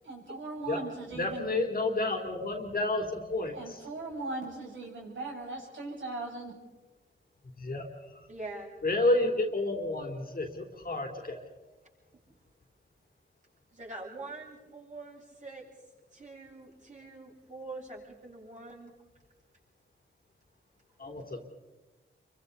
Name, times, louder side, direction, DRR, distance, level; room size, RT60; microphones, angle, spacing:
voice 1, 0.0-1.6 3.5-6.5, right 3 dB, 65° right, -2 dB, 6.5 m, -39 dB
voice 2, 1.1-3.8 7.6-7.9 8.8-11.4 21.0-21.4, left 2 dB, 45° left, 2 dB, 3.6 m, -30 dB
voice 3, 8.3-8.7 12.1-12.2 13.7-15.7 16.1-18.9, right 2 dB, 35° right, -4 dB, 7.9 m, -44 dB
28.5 x 24.0 x 4.1 m, 1.2 s
cardioid pair, 85°, 21 cm